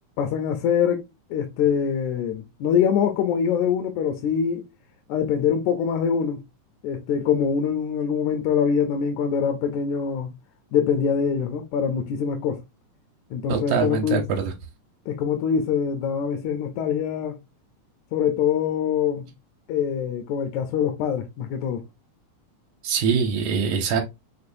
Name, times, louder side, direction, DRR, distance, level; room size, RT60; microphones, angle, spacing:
voice 1, 0.2-1.0 1.3-4.7 5.1-6.4 6.8-10.3 10.7-12.6 13.3-14.2 15.1-17.4 18.1-19.3 19.7-21.8, left 7 dB, 80° left, 1.9 m, -24 dB
voice 2, 13.5-14.5 22.8-24.0, right 6 dB, 75° right, 2.1 m, -23 dB
5.9 x 3.0 x 2.6 m
omnidirectional pair, 3.4 m